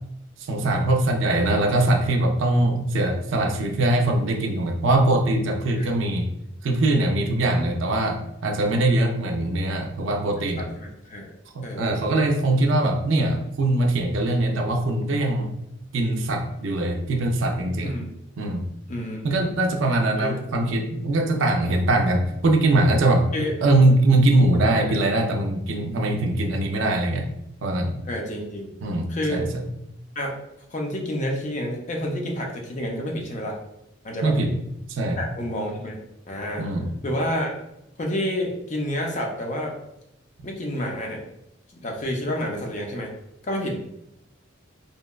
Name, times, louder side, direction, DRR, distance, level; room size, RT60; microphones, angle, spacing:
voice 1, 0.4-6.3 6.6-10.6 11.5-15.5 15.9-17.9 18.4-18.7 19.2-23.3 23.6-27.3 27.6-28.0 28.8-29.5 34.2-34.6 34.9-35.3 36.6-37.0, right 2 dB, 70° right, 3 dB, 0.4 m, -22 dB
voice 2, 7.3-7.6 10.4-11.3 11.6-12.1 17.8-18.1 18.9-19.5 20.2-20.4 21.5-21.6 23.3-23.5 24.7-25.0 28.1-28.7 29.1-29.5 30.2-30.4 30.7-33.6 34.0-34.3 35.2-36.0 36.3-36.7 37.0-37.5 38.0-39.7 40.4-41.2 41.7-43.1 43.4-43.8, equal, 35° left, 0 dB, 0.4 m, -29 dB
2.7 x 2.2 x 2.2 m, 0.83 s
head